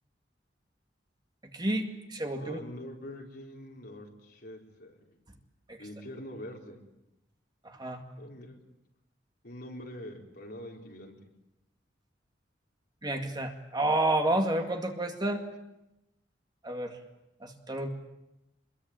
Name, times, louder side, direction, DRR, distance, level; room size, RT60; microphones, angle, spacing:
voice 1, 1.5-2.6 7.6-8.0 13.0-15.4 16.6-16.9 17.4-17.9, right 1 dB, 25° right, 4 dB, 2.2 m, -30 dB
voice 2, 2.4-5.2 5.8-6.8 8.2-8.6 9.4-11.1, left 1 dB, 55° left, 0 dB, 4.4 m, -44 dB
26.0 x 22.0 x 8.9 m, 0.90 s
head